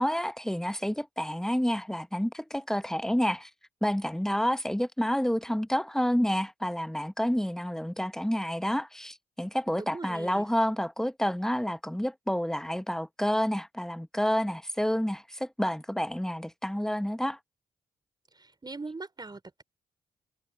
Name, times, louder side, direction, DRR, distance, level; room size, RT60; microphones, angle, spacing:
voice 1, 0.0-3.5 3.8-17.4, equal, 5° left, 1.0 m, -29 dB
voice 2, 9.8-10.5 18.4-19.6, right 3 dB, 30° right, 4.6 m, -41 dB
supercardioid pair, 50°, 15 cm